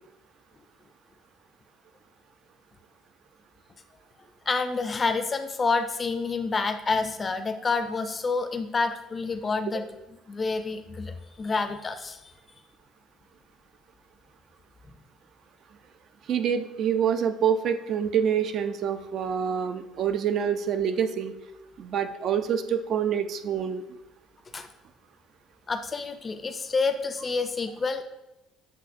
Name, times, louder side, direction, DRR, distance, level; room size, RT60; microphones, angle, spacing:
voice 1, 4.5-9.8 10.3-12.2 14.9-15.0 24.5-24.7 25.7-28.0, left 4 dB, 30° left, 9 dB, 0.4 m, -28 dB
voice 2, 16.3-21.3 21.8-23.8, right 8 dB, 55° right, 9 dB, 0.4 m, -26 dB
7.6 x 2.8 x 2.5 m, 0.94 s
supercardioid pair, 95°, 0 cm